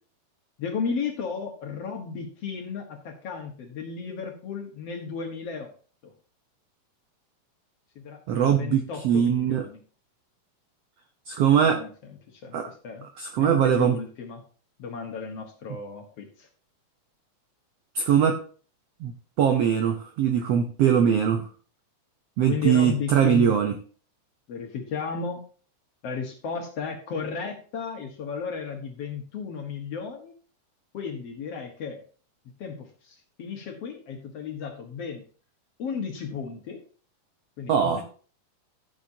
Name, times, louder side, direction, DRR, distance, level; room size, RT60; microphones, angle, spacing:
voice 1, 0.6-5.7 6.0-6.1 8.0-9.8 11.6-11.9 12.3-13.1 13.4-14.4 14.8-16.5 22.5-23.7 24.5-25.4 26.0-30.3 30.9-32.0 32.6-35.2 35.8-36.8 37.6-38.0, left 6 dB, 55° left, 3 dB, 2.1 m, -34 dB
voice 2, 8.3-9.7 11.3-11.8 12.5-12.7 13.2-14.0 17.9-18.4 19.0-19.1 19.4-21.5 22.4-23.8 37.7-38.0, right 8 dB, 75° right, 5 dB, 1.5 m, -21 dB
14.0 x 7.2 x 2.8 m, 0.40 s
omnidirectional pair, 3.9 m